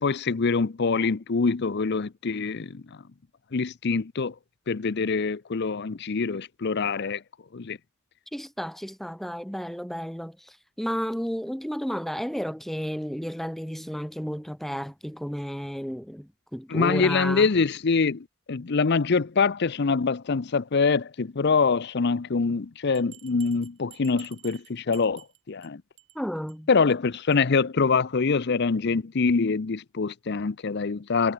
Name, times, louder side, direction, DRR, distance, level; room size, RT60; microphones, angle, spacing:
voice 1, 0.0-2.8 3.5-4.3 4.7-7.2 7.5-7.8 16.7-25.8 26.7-31.3, left 4 dB, 50° left, 0.6 m, -25 dB
voice 2, 8.3-17.5 26.1-26.7, equal, ahead, 0.7 m, -32 dB
Bell, 22.9-25.7 26.0-26.2 26.5-26.6 26.9-27.0 27.3-27.4, right 17 dB, 60° right, 5.6 m, -51 dB
head